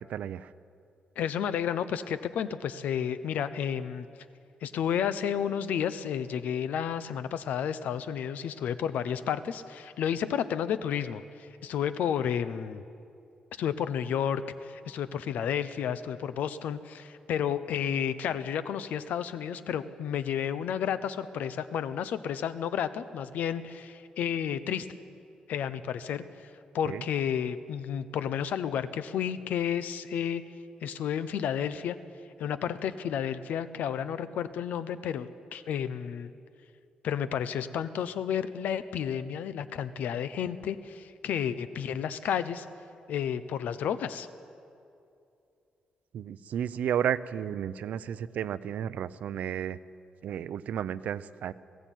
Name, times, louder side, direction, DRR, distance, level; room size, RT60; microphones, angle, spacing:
voice 1, 0.1-0.5 26.8-27.0 46.1-49.8 50.2-51.5, right 9 dB, 70° right, 15 dB, 0.6 m, -32 dB
voice 2, 1.2-4.1 4.6-12.8 13.6-24.9 25.5-26.2 26.7-30.4 30.8-32.0 32.4-36.3 37.0-42.7 43.1-44.3, left 8 dB, 85° left, 13 dB, 0.9 m, -31 dB
19.5 x 15.5 x 9.3 m, 2.6 s
wide cardioid pair, 170°, 3 cm